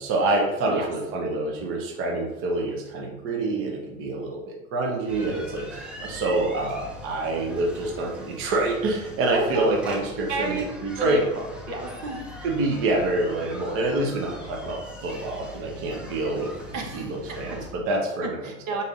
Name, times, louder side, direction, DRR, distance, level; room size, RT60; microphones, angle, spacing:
voice 1, 0.0-11.2 12.4-16.5 16.9-18.4, right 2 dB, 30° right, 0 dB, 0.8 m, -27 dB
sound 1, 5.1-17.7, left 1 dB, 5° right, 0.5 m, -41 dB
voice 2, 9.3-9.7 10.3-10.7 11.0-12.2 16.7-17.0 18.2-18.8, right 3 dB, 65° right, 2 dB, 1.1 m, -31 dB
5.2 x 4.1 x 2.5 m, 1.0 s
hypercardioid pair, 110°, 43 cm